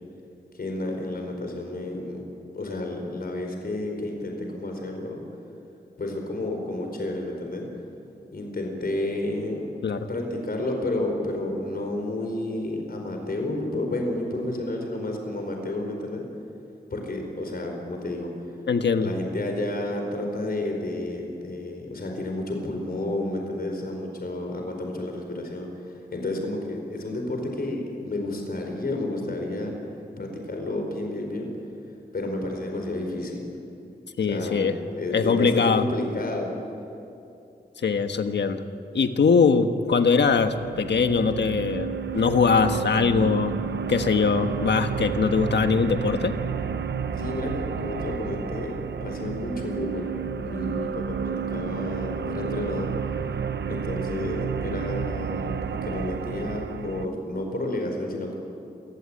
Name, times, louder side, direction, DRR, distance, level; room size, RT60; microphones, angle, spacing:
voice 1, 0.5-2.2 2.5-5.2 6.0-7.7 8.3-9.6 10.1-16.2 16.9-18.3 19.0-29.7 30.2-31.5 32.1-33.5 34.3-34.6 34.9-36.5 47.2-50.1 50.4-53.0 53.7-58.4, left 2 dB, 60° left, 2 dB, 4.7 m, -31 dB
voice 2, 18.7-19.1 34.2-34.7 35.1-35.9 37.8-38.6 38.9-43.5 43.9-46.3, left 5 dB, 90° left, 7 dB, 1.4 m, -22 dB
sound 1, 40.1-57.1, right 6 dB, 85° right, 0.8 m, -31 dB
27.0 x 16.0 x 9.9 m, 2.6 s
wide cardioid pair, 85°, 18 cm